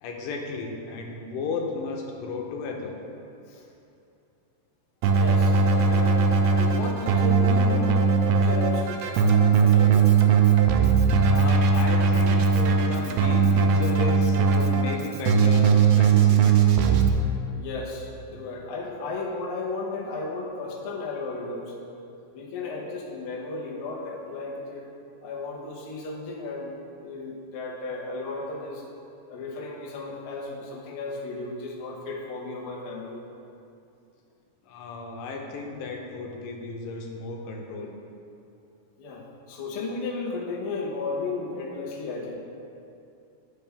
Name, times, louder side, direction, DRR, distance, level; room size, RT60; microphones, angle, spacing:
voice 1, 0.0-2.9 11.2-17.1 34.6-37.9, left 4 dB, 90° left, 1 dB, 2.4 m, -34 dB
Keyboard (musical), 5.0-17.1, right 5 dB, 80° right, 1.7 m, -20 dB
voice 2, 5.1-6.1 6.5-9.2 9.6-10.1 17.5-21.7 22.3-24.9 25.2-26.7 27.0-28.8 29.3-33.2 39.0-42.3, left 3 dB, 60° left, -4 dB, 1.4 m, -34 dB
11.0 x 5.2 x 3.5 m, 2.6 s
omnidirectional pair, 3.9 m